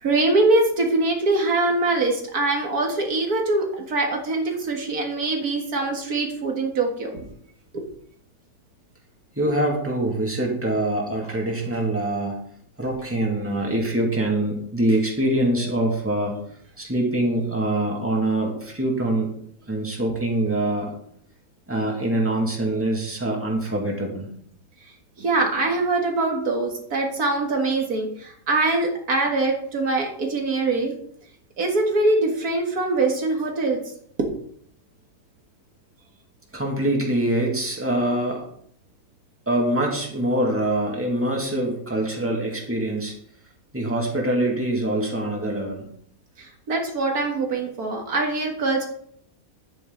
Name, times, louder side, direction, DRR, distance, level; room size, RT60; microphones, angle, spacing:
voice 1, 0.0-7.3 7.7-7.8 25.2-30.9 31.6-33.8 46.4-48.9, right 2 dB, 80° right, 2 dB, 2.2 m, -23 dB
voice 2, 9.4-12.4 12.8-16.4 16.8-19.3 19.6-20.9 21.7-24.3 36.5-38.4 39.5-43.1 43.7-45.9, right 1 dB, 10° right, -1 dB, 2.3 m, -24 dB
10.5 x 9.1 x 3.9 m, 0.65 s
omnidirectional pair, 1.6 m